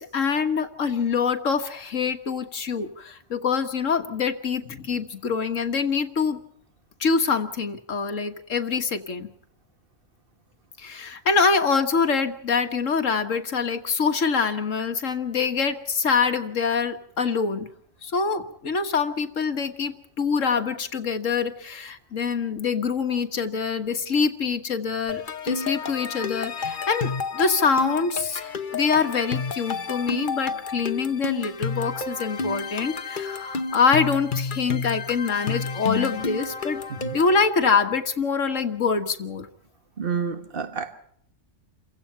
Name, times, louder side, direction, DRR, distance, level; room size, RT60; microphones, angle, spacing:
voice 1, 0.0-6.4 7.0-9.3 10.8-17.7 18.0-36.8 37.1-39.5, left 5 dB, 80° left, 7 dB, 1.8 m, -25 dB
sound 1, 25.1-37.4, left 5 dB, 40° left, 1.2 m, -31 dB
voice 2, 40.0-40.9, right 5 dB, 45° right, 8 dB, 1.8 m, -29 dB
29.0 x 16.5 x 5.7 m, 0.67 s
omnidirectional pair, 1.3 m